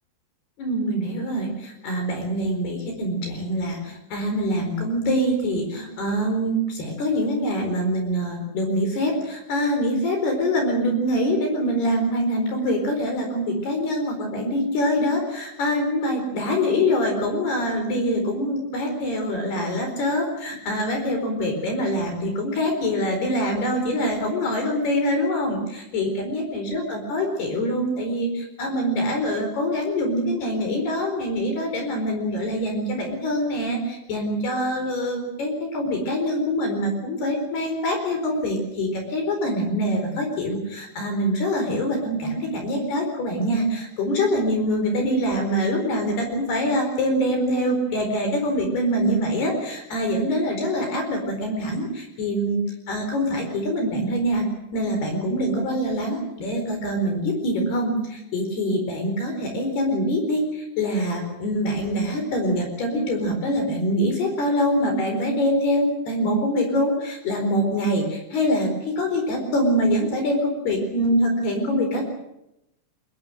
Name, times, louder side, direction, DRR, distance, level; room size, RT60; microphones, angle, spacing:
voice 1, 0.6-52.6 52.9-54.5 54.7-72.0, equal, 55° left, 4 dB, 6.2 m, -24 dB
22.5 x 22.0 x 7.7 m, 0.84 s
omnidirectional pair, 5.7 m